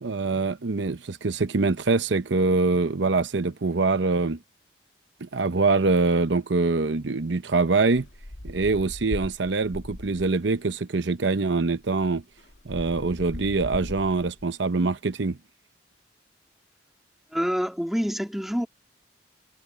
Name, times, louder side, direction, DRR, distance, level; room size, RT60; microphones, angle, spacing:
voice 1, 0.0-4.4 5.2-8.1 8.4-12.2 12.6-15.4, right 3 dB, 75° right, 0.8 m, -24 dB
sound 1, 7.9-10.5 11.4-11.5 11.8-14.4, left 1 dB, 85° left, 1.7 m, -39 dB
voice 2, 17.3-18.7, equal, ahead, 1.8 m, -26 dB
head